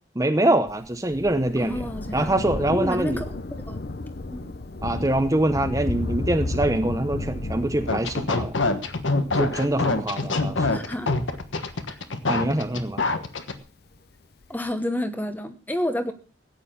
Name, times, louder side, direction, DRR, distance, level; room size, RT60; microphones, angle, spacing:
voice 1, 0.1-1.8 2.1-3.2 4.8-8.6 9.3-10.7 12.3-13.1, right 1 dB, 15° right, 8 dB, 0.8 m, -24 dB
Thunder, 0.7-13.5 14.4-14.5, left 2 dB, 55° left, 0.8 m, -34 dB
voice 2, 1.6-2.4 2.7-3.2 3.7-3.8 4.3-4.5 10.7-11.1 11.9-12.0 14.5-16.1, left 1 dB, 10° left, 9 dB, 0.9 m, -29 dB
sound 1, 7.9-13.5, left 3 dB, 75° left, 1.3 m, -25 dB
14.5 x 9.2 x 5.8 m, 0.39 s
head